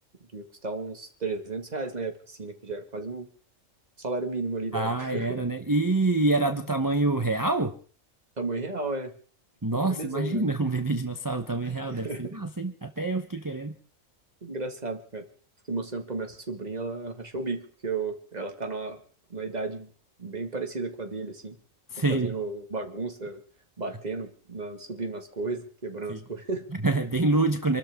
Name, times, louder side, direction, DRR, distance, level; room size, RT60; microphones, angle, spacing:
voice 1, 0.3-3.3 4.0-5.4 8.4-9.1 9.7-10.4 11.9-12.2 14.4-15.3 15.7-19.0 19.3-19.9 20.2-21.6 22.1-23.4 23.8-26.7, right 3 dB, 35° right, 5 dB, 2.1 m, -33 dB
voice 2, 4.7-7.8 9.6-13.7 21.9-22.3 26.1-26.2 26.8-27.8, right 2 dB, 15° right, 6 dB, 0.9 m, -26 dB
27.0 x 13.0 x 3.6 m, 0.43 s
omnidirectional pair, 1.3 m